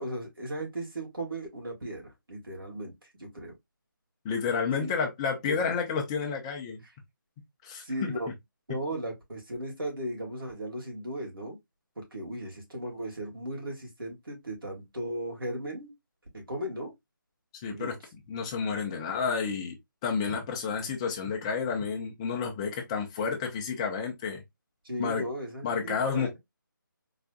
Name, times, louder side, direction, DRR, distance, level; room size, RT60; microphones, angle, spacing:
voice 1, 0.0-3.5 4.8-4.9 5.5-5.7 7.8-8.3 8.7-11.6 12.0-15.9 16.3-16.9 17.7-17.9 24.8-26.4, right 1 dB, 90° right, 2.3 m, -36 dB
voice 2, 4.2-6.8 7.6-8.1 17.6-18.0 18.3-19.8 20.0-24.4 25.0-25.2 25.6-26.4, left 5 dB, 15° left, 0.7 m, -30 dB
4.0 x 3.3 x 2.3 m
figure-of-eight pair, 160°, 11 cm